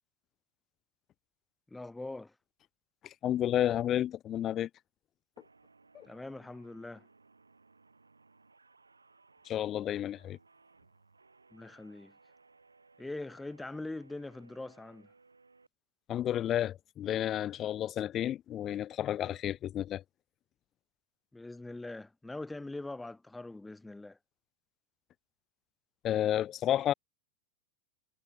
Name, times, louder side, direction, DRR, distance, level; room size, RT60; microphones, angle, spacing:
voice 1, 1.7-2.3 6.1-7.1 11.5-12.1 13.0-15.1 21.3-24.2, left 2 dB, 5° left, 3.9 m, -42 dB
voice 2, 3.0-4.7 5.9-6.1 9.4-10.4 16.1-20.0 26.0-26.9, left 11 dB, 30° left, 1.0 m, -31 dB
sound 1, 5.4-15.7, right 3 dB, 80° right, 6.0 m, -63 dB
figure-of-eight pair, 90°, 0 cm